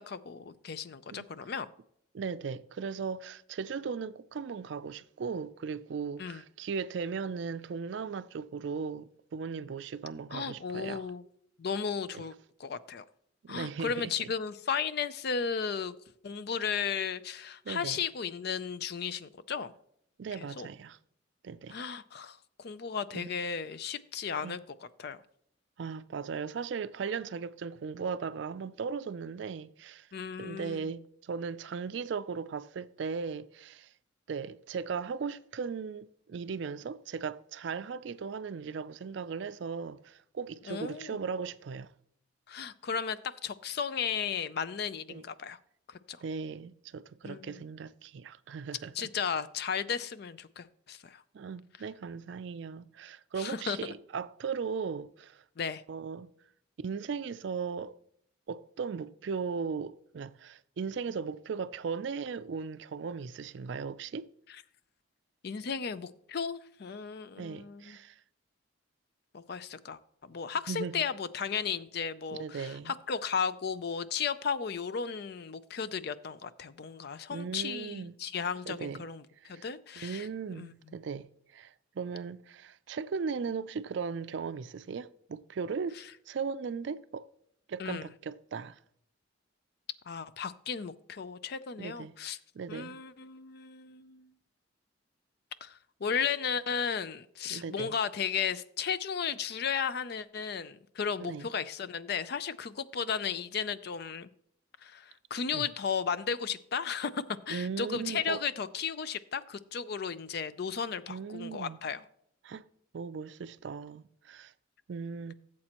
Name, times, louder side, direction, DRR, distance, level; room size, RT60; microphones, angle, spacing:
voice 1, 0.0-1.7 6.2-6.4 10.3-11.2 11.6-12.3 12.6-13.0 13.5-16.0 16.2-19.7 20.3-20.7 21.7-24.6 25.0-25.2 30.1-30.9 40.7-41.2 42.5-45.6 45.9-46.2 47.2-47.6 48.9-51.2 53.4-53.9 55.6-55.8 64.5-64.6 65.4-68.0 69.3-80.7 87.8-88.1 90.1-92.4 92.7-94.3 95.6-104.3 104.8-112.0, left 6 dB, 55° left, 0.4 m, -35 dB
voice 2, 2.1-11.0 12.1-12.2 13.4-14.3 17.7-18.0 20.2-21.0 21.4-21.8 23.1-23.3 24.4-24.6 25.8-30.1 30.4-33.9 34.3-41.9 45.1-45.2 46.2-49.1 51.3-55.4 55.9-56.3 56.8-58.0 58.5-64.3 67.4-68.2 70.7-71.0 72.3-72.9 77.3-78.2 78.7-79.1 79.4-79.7 80.0-86.0 86.3-87.3 87.7-88.8 91.8-92.1 92.5-93.0 97.5-98.0 101.2-101.5 105.5-105.6 107.5-108.4 111.1-111.8 112.4-112.6 112.9-114.5 114.9-115.3, right 5 dB, 60° right, 0.4 m, -37 dB
15.5 x 7.6 x 2.9 m
head